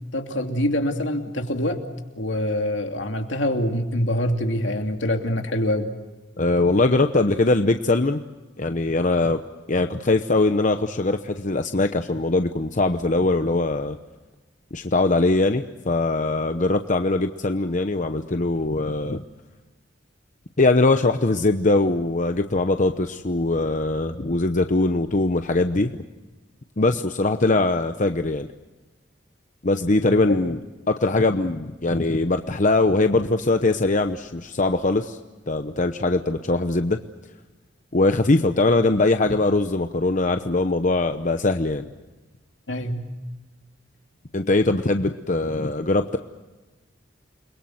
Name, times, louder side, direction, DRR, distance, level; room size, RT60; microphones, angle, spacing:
voice 1, 0.1-1.8 2.2-5.9 30.0-30.4 42.7-43.0, left 1 dB, 75° left, 4 dB, 2.8 m, -25 dB
voice 2, 6.4-8.2 8.6-9.4 9.7-14.0 14.7-19.2 20.6-26.0 26.8-28.5 29.6-30.6 30.9-35.2 35.5-37.0 37.9-41.9 44.3-46.2, left 2 dB, 45° left, 7 dB, 0.9 m, -21 dB
29.5 x 22.0 x 7.9 m, 1.2 s
head